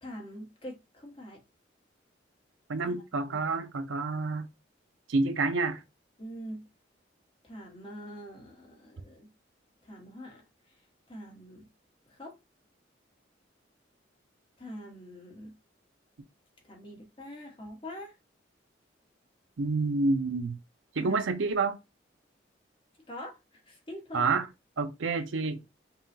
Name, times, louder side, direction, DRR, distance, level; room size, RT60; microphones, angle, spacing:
voice 1, 0.0-1.4 2.8-2.9 3.3-3.4 6.2-6.7 7.4-9.3 9.8-10.8 11.1-11.7 12.1-12.4 14.6-15.5 16.6-18.2 20.9-21.2 23.1-24.3, equal, 30° left, 1.3 m, -44 dB
voice 2, 2.7-4.5 5.1-5.8 19.6-20.6 21.0-21.8 24.1-24.4 24.8-25.6, right 3 dB, 85° right, 0.6 m, -28 dB
5.5 x 2.4 x 2.6 m
head